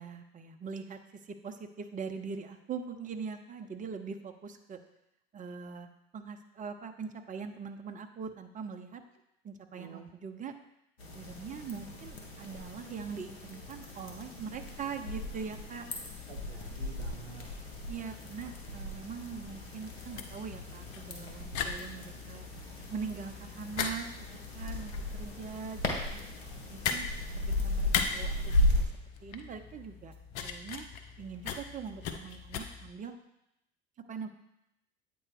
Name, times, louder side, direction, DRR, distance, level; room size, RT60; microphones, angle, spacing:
voice 1, 0.0-4.8 5.3-9.0 9.4-10.5 11.1-16.1 17.9-22.5 22.9-24.1 24.5-26.2 26.7-27.0 27.6-28.9 29.2-30.1 30.4-30.9 31.2-33.2 34.1-34.3, right 6 dB, 25° right, 6 dB, 0.7 m, -42 dB
voice 2, 9.7-10.1 16.3-17.5 26.2-26.3 26.5-26.6, right 6 dB, 85° right, 5 dB, 0.6 m, -49 dB
sound 1, 11.0-28.8, left 1 dB, 85° left, 1.1 m, -36 dB
sound 2, 16.0-32.9, left 5 dB, 15° left, 1.1 m, -52 dB
sound 3, 19.4-32.6, left 7 dB, 55° left, 0.7 m, -38 dB
8.6 x 3.0 x 4.8 m, 0.85 s
figure-of-eight pair, 65°, 31 cm